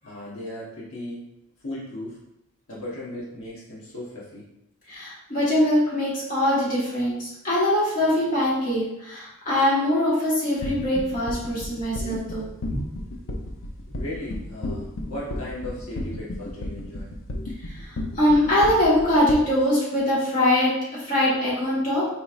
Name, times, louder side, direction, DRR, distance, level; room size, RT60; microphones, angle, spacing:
voice 1, 0.0-1.3 1.6-2.2 2.7-4.5 13.9-17.1 18.1-18.2, left 1 dB, 90° left, -6 dB, 1.0 m, -36 dB
voice 2, 4.9-12.5 17.8-17.9 18.2-22.1, left 1 dB, 40° left, -8 dB, 1.4 m, -22 dB
sound 1, 10.6-19.3, left 1 dB, 65° left, 0.5 m, -32 dB
4.2 x 3.1 x 2.4 m, 0.85 s
head